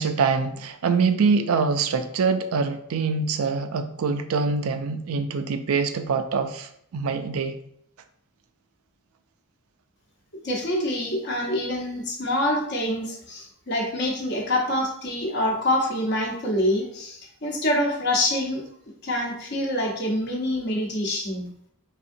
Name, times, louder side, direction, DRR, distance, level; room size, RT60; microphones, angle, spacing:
voice 1, 0.0-7.5, right 5 dB, 70° right, 8 dB, 0.4 m, -24 dB
voice 2, 10.4-18.7 19.0-21.5, left 1 dB, 50° left, 0 dB, 0.9 m, -26 dB
4.2 x 3.6 x 2.6 m, 0.68 s
head